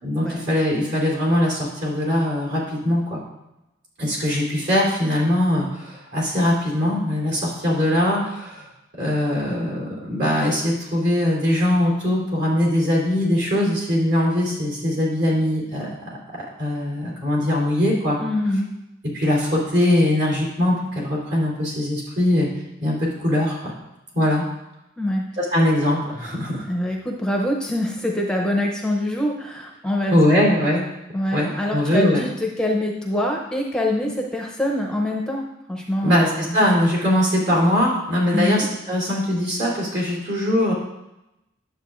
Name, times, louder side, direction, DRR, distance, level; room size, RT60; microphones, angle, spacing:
voice 1, 0.0-3.2 4.0-8.7 9.0-16.2 16.6-18.2 19.1-22.5 22.8-23.7 24.1-24.4 25.4-26.6 30.1-30.8 31.3-32.2 36.0-40.7, left 1 dB, 60° right, -3 dB, 3.1 m, -21 dB
voice 2, 18.2-18.7 25.0-25.2 26.6-30.4 31.1-36.6 38.3-38.7, left 1 dB, 5° left, 0 dB, 0.6 m, -24 dB
10.0 x 7.4 x 2.5 m, 0.91 s
head